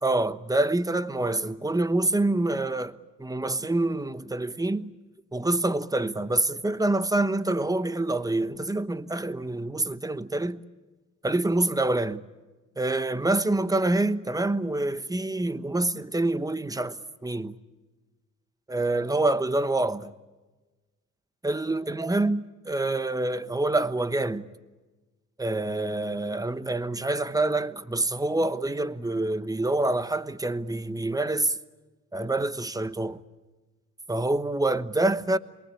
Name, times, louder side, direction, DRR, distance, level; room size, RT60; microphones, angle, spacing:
voice 1, 0.0-4.9 5.3-10.6 11.2-12.2 12.8-17.5 18.7-20.0 21.4-24.4 25.4-31.5 32.1-33.2 34.1-35.4, right 2 dB, 10° right, 1.1 m, -26 dB
27.5 x 22.5 x 8.5 m
cardioid pair, 90°, 30 cm